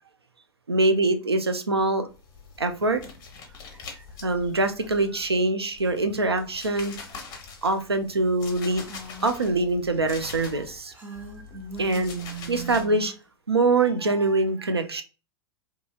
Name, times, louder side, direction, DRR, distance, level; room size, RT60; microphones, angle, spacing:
voice 1, 0.7-2.1 2.6-3.0 4.2-6.9 7.6-8.8 9.2-10.9 11.8-12.2 12.5-13.1 13.5-15.0, right 2 dB, 85° right, 7 dB, 0.4 m, -24 dB
sound 1, 2.1-5.4 5.7-10.8 11.1-12.9, left 5 dB, 30° left, 0.7 m, -44 dB
Female speech woman speaking, 8.8-9.4 10.9-13.2, right 5 dB, 15° right, 0.8 m, -38 dB
2.7 x 2.6 x 2.3 m, 0.34 s
figure-of-eight pair, 95°, 13 cm